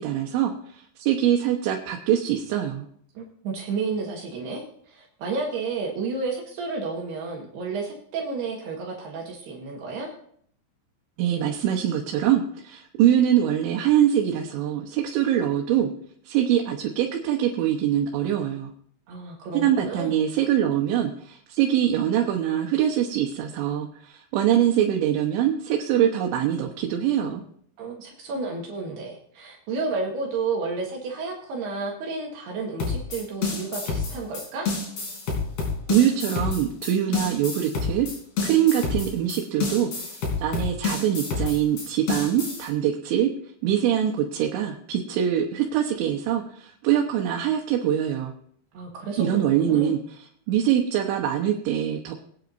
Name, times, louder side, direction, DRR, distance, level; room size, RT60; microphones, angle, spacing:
voice 1, 0.0-2.9 11.2-15.9 16.3-18.7 19.5-27.4 35.9-38.1 38.4-43.3 43.6-48.3 49.2-52.1, right 10 dB, 90° right, 0 dB, 3.4 m, -23 dB
voice 2, 3.1-10.1 19.1-20.1 27.8-34.7 48.7-49.9, right 4 dB, 70° right, -1 dB, 3.3 m, -31 dB
sound 1, 32.8-42.7, left 4 dB, 60° left, 5.3 m, -28 dB
23.5 x 9.2 x 2.6 m, 0.64 s
omnidirectional pair, 5.2 m